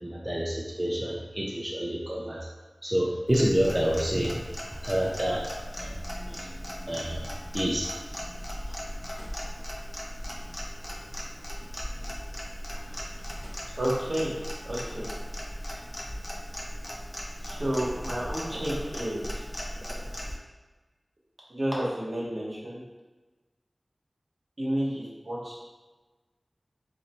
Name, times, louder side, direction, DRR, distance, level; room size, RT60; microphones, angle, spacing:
voice 1, 0.0-2.5 2.8-4.4 4.8-5.5 5.8-5.9 6.2-6.3 6.9-7.9, equal, 25° right, -4 dB, 0.5 m, -28 dB
Clock, 3.3-20.4, equal, 20° left, 0.6 m, -37 dB
voice 2, 13.7-14.3 14.6-15.1 17.4-19.4 21.5-22.8 24.6-25.6, right 1 dB, 60° right, -5 dB, 1.1 m, -31 dB
3.2 x 2.6 x 4.3 m, 1.2 s
wide cardioid pair, 60°, 0 cm